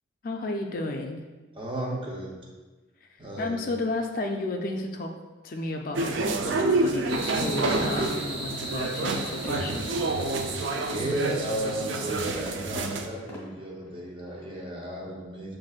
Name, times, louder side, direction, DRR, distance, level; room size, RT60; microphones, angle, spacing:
voice 1, 0.2-1.2 3.0-5.1 5.4-10.0, left 2 dB, 50° left, 3 dB, 0.3 m, -32 dB
voice 2, 1.5-2.4 3.2-3.7 10.8-15.6, right 1 dB, 25° right, -2 dB, 0.7 m, -33 dB
sound 1, 5.9-13.1, right 2 dB, 80° right, 0.4 m, -28 dB
sound 2, 7.1-12.5, right 1 dB, 60° right, 0.8 m, -39 dB
sound 3, 9.4-11.0 12.7-14.8, equal, 15° left, 1.2 m, -48 dB
7.4 x 2.5 x 2.4 m, 1.2 s
head